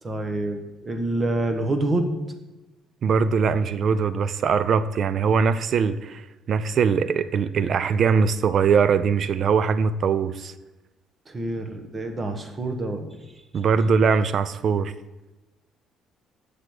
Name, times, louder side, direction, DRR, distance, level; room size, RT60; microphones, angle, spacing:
voice 1, 0.0-2.2 11.3-13.3, right 2 dB, 35° right, 6 dB, 1.1 m, -27 dB
voice 2, 3.0-10.5 13.5-14.9, right 6 dB, 55° right, 14 dB, 0.4 m, -21 dB
6.7 x 5.0 x 6.1 m, 1.1 s
supercardioid pair, 65°, 0 cm